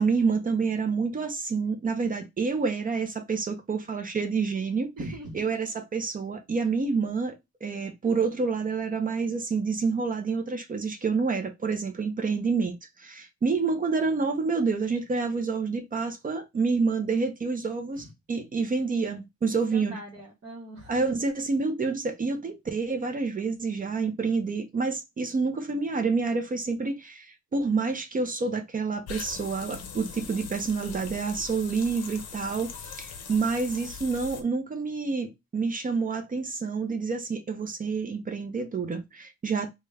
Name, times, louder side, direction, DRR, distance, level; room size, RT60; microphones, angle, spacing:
voice 1, 0.0-4.9 5.3-20.0 20.9-39.7, right 4 dB, 30° right, 0.5 m, -28 dB
voice 2, 5.0-5.5 18.0-18.1 19.5-20.9, right 1 dB, 45° right, 1.0 m, -40 dB
sound 1, 29.1-34.4, left 6 dB, 55° left, 0.6 m, -41 dB
3.4 x 2.1 x 3.3 m
cardioid pair, 140°, 30 cm